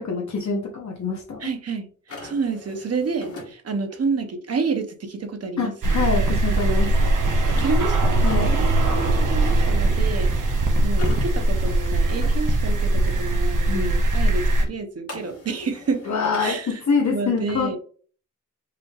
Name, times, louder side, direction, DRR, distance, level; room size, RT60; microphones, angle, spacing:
voice 1, 0.0-1.5 5.6-6.9 8.2-8.5 8.9-9.0 13.7-13.9 16.1-17.8, left 4 dB, 65° left, 0.9 m, -25 dB
voice 2, 1.4-1.9 2.2-6.1 7.5-10.6 10.8-16.1 16.4-16.8 17.1-17.8, right 4 dB, 50° right, 0.8 m, -29 dB
sound 1, 2.1-3.5 6.5-7.8 10.9-12.3 15.1-16.6, left 2 dB, 50° left, 1.3 m, -41 dB
sound 2, 5.8-14.7, right 2 dB, 80° right, 1.0 m, -20 dB
4.8 x 3.2 x 2.4 m
wide cardioid pair, 155°, 30 cm